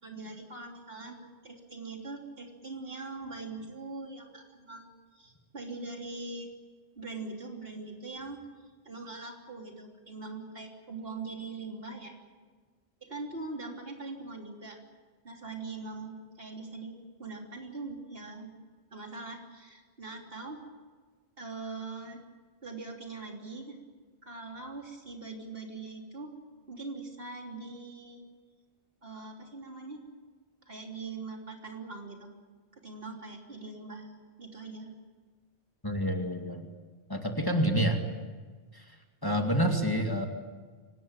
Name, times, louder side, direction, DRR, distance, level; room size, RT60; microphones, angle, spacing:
voice 1, 0.0-4.9 5.1-6.5 7.0-8.4 8.9-12.1 13.0-14.8 15.2-18.5 18.9-20.6 21.4-22.2 22.6-23.8 24.2-26.3 26.7-28.2 29.0-30.0 30.7-32.3 32.7-34.1 34.4-34.9, right 3 dB, 60° right, 1 dB, 3.6 m, -42 dB
voice 2, 35.8-36.6 37.1-38.0 38.7-38.9 39.2-40.3, equal, 20° left, 3 dB, 2.3 m, -28 dB
25.0 x 19.0 x 9.1 m, 1.5 s
omnidirectional pair, 1.1 m